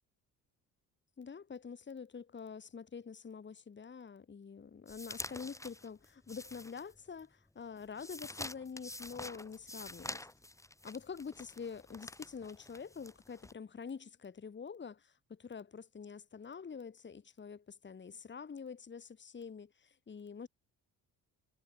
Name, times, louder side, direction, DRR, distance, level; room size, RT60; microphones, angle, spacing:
voice 1, 1.2-10.3 10.8-20.5, left 6 dB, 30° left, 1.5 m, -46 dB
sound 1, 4.9-7.2 7.6-13.5, left 1 dB, 10° left, 1.5 m, -47 dB
supercardioid pair, 65°, 37 cm